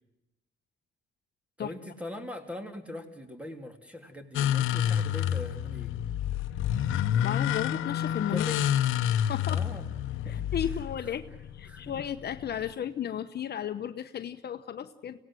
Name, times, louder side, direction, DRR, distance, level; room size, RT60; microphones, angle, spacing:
voice 1, 1.6-5.9 8.3-8.7 9.5-10.0 10.2-10.4 11.7-11.9, left 1 dB, 5° right, 5 dB, 3.3 m, -41 dB
sound 1, 4.3-12.7, left 10 dB, 90° left, 0.9 m, -29 dB
voice 2, 7.2-8.4 9.3-9.6 10.3-11.3 11.5-15.2, left 9 dB, 55° left, 10 dB, 1.0 m, -34 dB
25.0 x 18.0 x 7.8 m, 0.92 s
cardioid pair, 90°, 20 cm